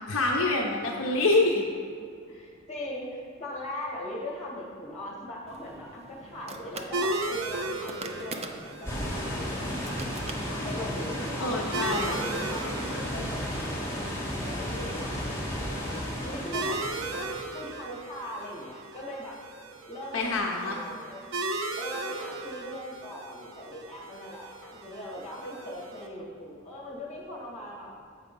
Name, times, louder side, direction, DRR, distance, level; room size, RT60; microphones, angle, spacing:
voice 1, 0.1-1.7 11.4-12.1 20.1-20.7, left 2 dB, 75° left, -1 dB, 0.7 m, -26 dB
voice 2, 2.3-11.5 11.9-16.8 17.1-19.4 19.9-21.2 21.8-27.9, left 1 dB, 35° left, -3 dB, 2.0 m, -40 dB
sound 1, 5.5-11.0, right 3 dB, 30° right, 0.5 m, -44 dB
sound 2, 6.9-26.1, right 2 dB, 75° right, 0.7 m, -37 dB
sound 3, 8.8-17.5, equal, 15° left, 1.7 m, -33 dB
8.1 x 4.8 x 5.3 m, 2.4 s
head